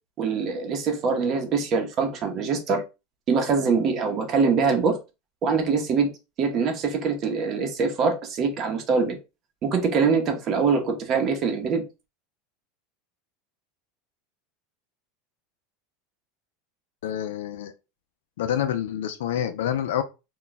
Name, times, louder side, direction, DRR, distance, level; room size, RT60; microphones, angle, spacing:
voice 1, 0.2-2.8 3.3-5.0 5.4-6.1 6.4-9.2 9.6-11.8, right 5 dB, 40° right, 0.8 m, -23 dB
voice 2, 17.0-17.7 18.4-20.0, left 10 dB, 80° left, 0.4 m, -27 dB
2.3 x 2.2 x 3.9 m
supercardioid pair, 105°, 0 cm